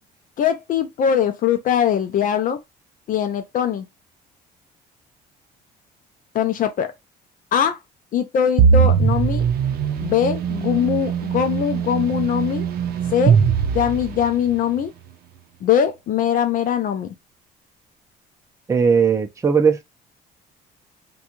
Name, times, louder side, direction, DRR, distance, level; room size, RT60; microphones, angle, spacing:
voice 1, 0.4-2.6 3.1-3.8 6.3-6.9 7.5-7.8 8.1-9.4 10.0-12.7 13.1-13.4 13.7-14.9 15.6-17.1, left 8 dB, 55° left, 0.5 m, -21 dB
sound 1, 8.6-14.5, right 7 dB, 65° right, 0.6 m, -20 dB
voice 2, 18.7-19.8, right 6 dB, 15° right, 0.5 m, -17 dB
3.5 x 2.3 x 2.9 m
cardioid pair, 110°, 17 cm